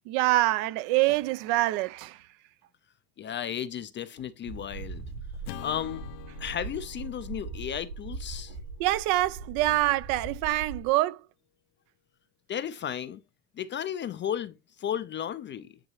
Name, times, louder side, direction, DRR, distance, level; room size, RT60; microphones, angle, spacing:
voice 1, 0.1-2.2 8.8-11.2, right 17 dB, 65° right, 0.6 m, -25 dB
voice 2, 3.2-5.0 5.6-6.0 6.4-8.5 12.5-13.2 13.6-15.7, left 9 dB, 25° left, 0.4 m, -34 dB
sound 1, 4.5-10.9, right 3 dB, 80° right, 4.9 m, -40 dB
Acoustic guitar / Strum, 5.4-9.9, left 14 dB, 85° left, 0.8 m, -47 dB
9.9 x 3.9 x 3.1 m
supercardioid pair, 100°, 47 cm